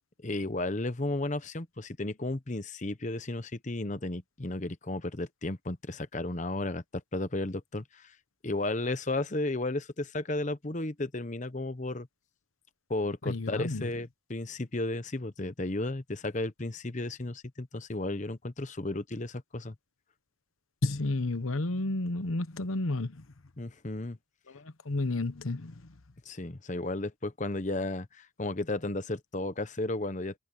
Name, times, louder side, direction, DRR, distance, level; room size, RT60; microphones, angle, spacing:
voice 1, 0.2-8.1 8.4-12.1 12.9-19.7 23.6-24.2 26.3-30.3, left 2 dB, 35° left, 0.9 m, -34 dB
voice 2, 13.2-13.9 20.8-23.2 24.5-25.9, left 2 dB, 80° left, 1.1 m, -31 dB
head